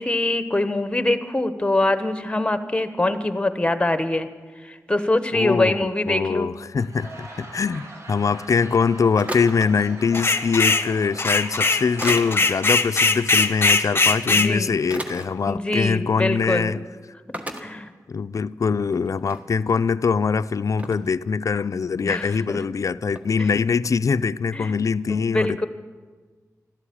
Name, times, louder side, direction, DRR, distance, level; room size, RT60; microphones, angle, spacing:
voice 1, 0.0-4.3 4.6-6.5 14.3-14.7 15.5-16.8 17.6-17.9 22.0-22.6 23.4-23.5 24.5-24.7 25.1-25.7, left 2 dB, 15° left, 1.1 m, -24 dB
voice 2, 5.3-5.7 6.1-16.8 18.1-25.6, left 5 dB, 55° left, 0.4 m, -23 dB
Laughter / Crowd, 6.6-12.8, right 2 dB, 50° right, 2.6 m, -42 dB
sound 1, 9.2-9.7 11.1-11.2 12.0-12.3 14.0-14.2 14.9-15.3 16.1-16.3 16.6-16.7 17.3-17.6 18.3-18.4 18.8-19.4 20.1-20.2 20.8-21.1 23.1-23.2, right 1 dB, 20° right, 1.4 m, -33 dB
sound 2, 10.1-10.9 11.2-14.5, left 3 dB, 35° left, 0.9 m, -20 dB
13.0 x 12.5 x 8.6 m
wide cardioid pair, 85°, 6 cm